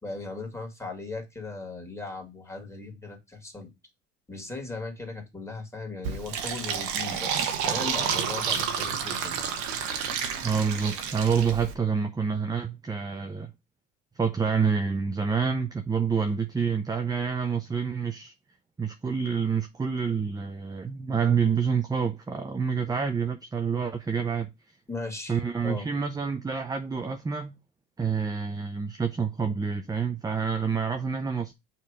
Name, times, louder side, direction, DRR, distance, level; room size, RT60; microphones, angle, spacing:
voice 1, 0.0-3.7 4.3-9.4 24.9-25.9, left 3 dB, 10° left, 2.2 m, -38 dB
Fill (with liquid), 6.0-11.7, right 7 dB, 70° right, 1.3 m, -30 dB
voice 2, 10.4-13.5 14.2-18.3 18.8-24.5 25.3-27.5 28.0-31.5, right 6 dB, 15° right, 0.6 m, -27 dB
6.7 x 3.0 x 4.9 m
supercardioid pair, 95°, 30 cm